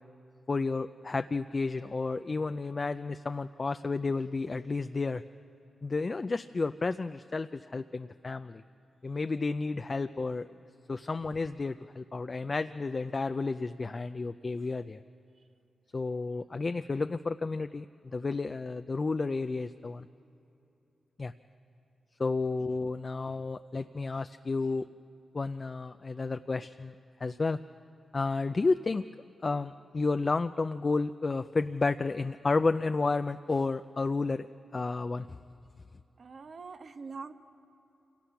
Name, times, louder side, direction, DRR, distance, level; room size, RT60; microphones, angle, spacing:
voice 1, 0.5-5.2 5.8-8.6 9.0-10.5 10.9-15.0 15.9-20.1 21.2-21.3 22.2-24.9 25.3-26.9 27.2-27.6 28.1-29.0 29.4-34.5 34.7-35.4, left 3 dB, 40° left, 9 dB, 0.4 m, -31 dB
voice 2, 36.2-37.3, right 4 dB, 60° right, 8 dB, 1.0 m, -44 dB
26.5 x 18.0 x 5.8 m, 2.9 s
cardioid pair, 70°, 0 cm